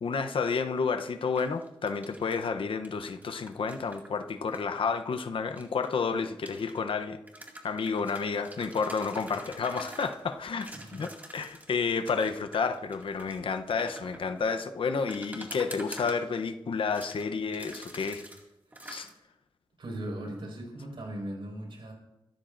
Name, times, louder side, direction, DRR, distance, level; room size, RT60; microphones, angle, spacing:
voice 1, 0.0-7.2 7.6-18.2 18.8-19.1, left 5 dB, 80° left, 0.8 m, -30 dB
sound 1, 1.1-2.5 2.8-4.6 5.5-6.8 7.3-10.2 10.6-11.7 12.1-14.4 15.1-16.5 16.9-17.2 17.5-18.4 18.7-19.1, right 1 dB, 20° right, 2.1 m, -46 dB
voice 2, 10.7-11.0 19.8-21.9, right 1 dB, 80° right, 5.1 m, -38 dB
25.0 x 13.0 x 2.6 m
wide cardioid pair, 160°, 9 cm